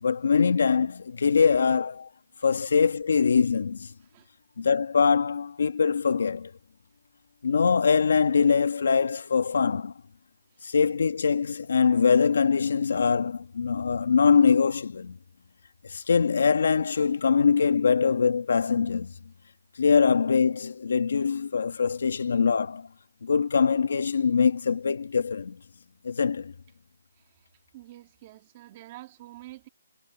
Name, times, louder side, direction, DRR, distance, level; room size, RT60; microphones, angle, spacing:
voice 1, 0.0-2.1 2.4-3.9 4.6-6.5 7.4-9.9 10.6-15.2 15.9-19.1 19.8-22.9 23.2-25.6 26.0-26.5, left 6 dB, 50° left, 1.4 m, -23 dB
voice 2, 27.2-27.5 27.7-29.7, right 16 dB, 20° right, 2.4 m, -48 dB
hypercardioid pair, 175°, 0 cm